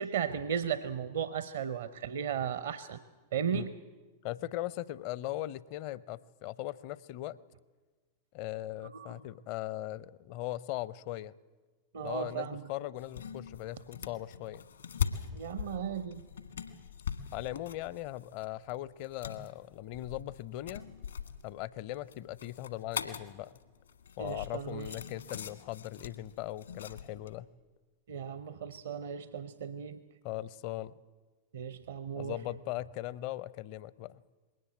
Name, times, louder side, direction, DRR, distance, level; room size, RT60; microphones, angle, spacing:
voice 1, 0.0-3.0 3.3-3.7 8.8-9.1 11.9-12.6 15.3-16.3 24.2-25.0 28.1-30.0 31.5-32.4, right 8 dB, 60° right, 13 dB, 0.7 m, -36 dB
voice 2, 4.2-7.4 8.3-11.3 12.0-14.6 17.3-20.9 21.4-23.5 24.2-27.5 30.2-30.9 32.2-34.2, left 15 dB, 45° left, 21 dB, 0.6 m, -39 dB
sound 1, 13.0-27.3, left 7 dB, 75° left, 1.4 m, -42 dB
21.0 x 18.5 x 7.9 m, 1.3 s
figure-of-eight pair, 90°, 0 cm